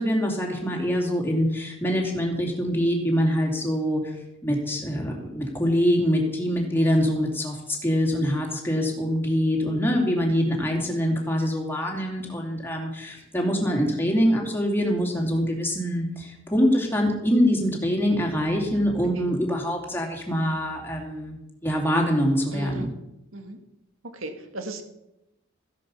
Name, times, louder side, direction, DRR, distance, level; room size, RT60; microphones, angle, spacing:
voice 1, 0.0-4.2 4.4-22.9, equal, 10° left, 0 dB, 2.9 m, -24 dB
voice 2, 18.7-19.3 22.5-22.9 23.3-23.6 24.0-24.8, right 2 dB, 75° right, 6 dB, 2.0 m, -37 dB
15.0 x 10.5 x 5.6 m, 0.91 s
head